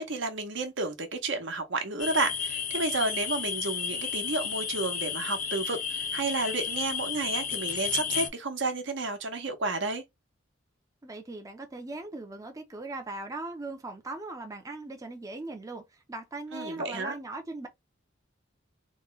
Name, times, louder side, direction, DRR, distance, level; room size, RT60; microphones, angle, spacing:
voice 1, 0.0-10.0 16.5-17.1, right 3 dB, 65° right, 0.9 m, -31 dB
sound 1, 2.0-8.3, left 7 dB, 45° left, 0.6 m, -32 dB
voice 2, 11.0-17.7, right 2 dB, 15° right, 0.5 m, -39 dB
3.1 x 2.1 x 3.8 m
head